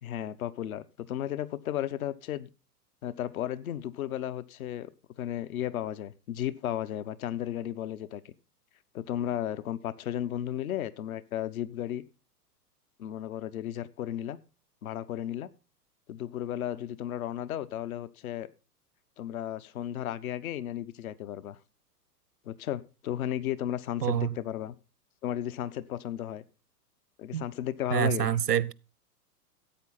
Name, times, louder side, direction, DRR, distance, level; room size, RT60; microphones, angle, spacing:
voice 1, 0.0-2.5 3.0-4.9 5.2-8.3 8.9-12.0 13.0-14.4 14.8-15.5 16.1-18.5 19.2-21.6 22.4-24.7 25.2-26.4 27.2-28.3, left 11 dB, 60° left, 1.1 m, -34 dB
voice 2, 24.0-24.3 27.3-27.4 27.9-28.7, right 10 dB, 80° right, 0.9 m, -26 dB
14.0 x 8.9 x 4.1 m
hypercardioid pair, 105°, 47 cm